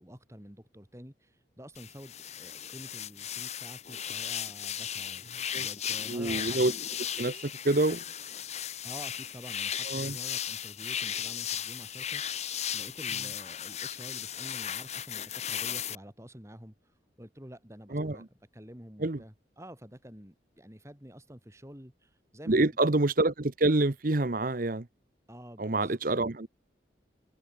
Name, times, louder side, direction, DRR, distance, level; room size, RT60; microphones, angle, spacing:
voice 1, 0.0-6.6 8.8-22.6 25.3-26.0, equal, 15° right, 4.3 m, -49 dB
sound 1, 1.7-15.9, left 9 dB, 35° left, 1.2 m, -36 dB
voice 2, 6.1-6.7 7.2-8.0 9.9-10.2 17.9-18.2 19.0-19.2 22.5-24.9 25.6-26.5, right 2 dB, 50° right, 1.0 m, -27 dB
head